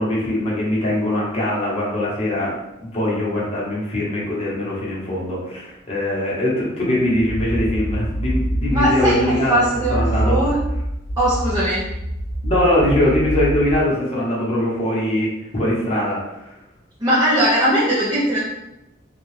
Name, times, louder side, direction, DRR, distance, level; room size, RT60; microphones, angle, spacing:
voice 1, 0.0-2.5 2.8-9.6 9.9-10.4 12.4-15.3 15.5-16.2 16.4-16.5, left 1 dB, 30° left, -6 dB, 0.9 m, -21 dB
sound 1, 6.9-13.8, right 1 dB, 90° right, 0.9 m, -25 dB
voice 2, 8.7-10.6 11.2-11.9 17.0-18.4, equal, 20° right, -8 dB, 0.5 m, -19 dB
2.7 x 2.3 x 3.2 m, 0.91 s
head